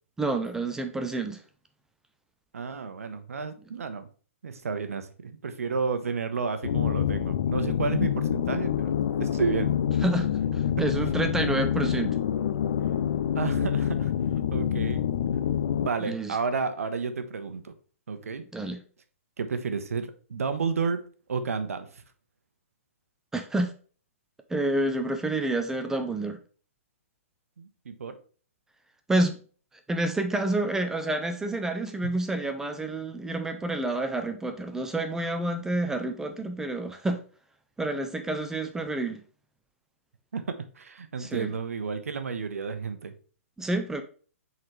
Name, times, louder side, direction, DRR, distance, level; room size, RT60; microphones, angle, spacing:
voice 1, 0.2-1.4 10.0-12.2 16.0-16.4 18.5-18.8 23.3-23.7 24.5-26.4 29.1-29.4 29.9-37.2 37.8-39.2 41.2-41.5 43.6-44.0, right 2 dB, 5° right, 7 dB, 0.5 m, -29 dB
voice 2, 2.5-4.1 4.4-9.8 13.3-14.1 14.5-15.0 15.8-17.7 18.1-18.4 19.4-21.0 21.3-22.0 27.6-28.2 40.3-43.1, right 5 dB, 80° right, 10 dB, 1.0 m, -31 dB
sound 1, 6.6-15.9, left 9 dB, 65° left, 0.5 m, -27 dB
7.4 x 4.0 x 3.2 m, 0.40 s
hypercardioid pair, 135°, 8 cm